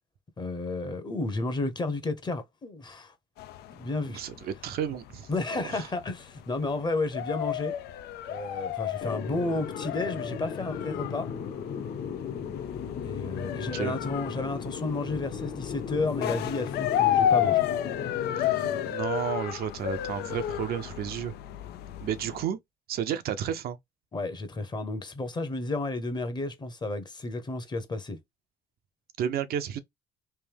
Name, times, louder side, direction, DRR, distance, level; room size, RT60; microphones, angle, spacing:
voice 1, 0.4-3.1 3.7-4.2 5.3-7.7 8.3-11.3 13.0-17.6 24.1-28.2, left 2 dB, 25° left, 0.9 m, -32 dB
sound 1, 3.4-22.4, left 11 dB, 75° left, 0.5 m, -32 dB
voice 2, 4.1-5.3 5.5-5.9 13.6-14.0 18.4-21.3 22.0-22.6 22.9-23.8 29.2-29.8, right 9 dB, 65° right, 0.6 m, -32 dB
sound 2, 9.0-18.9, left 7 dB, 60° left, 1.5 m, -36 dB
3.3 x 2.6 x 3.4 m
cardioid pair, 110°, 17 cm